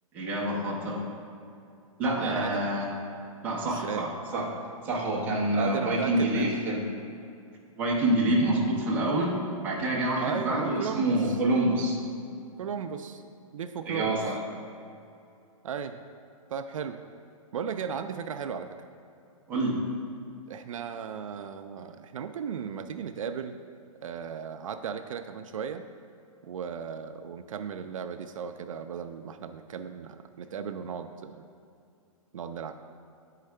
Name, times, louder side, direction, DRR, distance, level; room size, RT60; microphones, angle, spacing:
voice 1, 0.1-1.1 2.0-2.9 3.4-4.5 4.8-6.8 7.8-12.0 13.9-14.4 19.5-19.8, right 1 dB, 10° right, -4 dB, 0.6 m, -27 dB
voice 2, 2.2-2.6 3.6-4.1 5.4-6.6 10.2-11.4 12.6-13.2 13.5-14.3 15.6-16.0 16.5-17.0 17.5-18.8 20.5-23.5 24.0-25.9 26.4-31.4 32.3-32.7, right 7 dB, 65° right, 8 dB, 0.4 m, -36 dB
8.8 x 4.7 x 3.3 m, 2.6 s
hypercardioid pair, 165°, 18 cm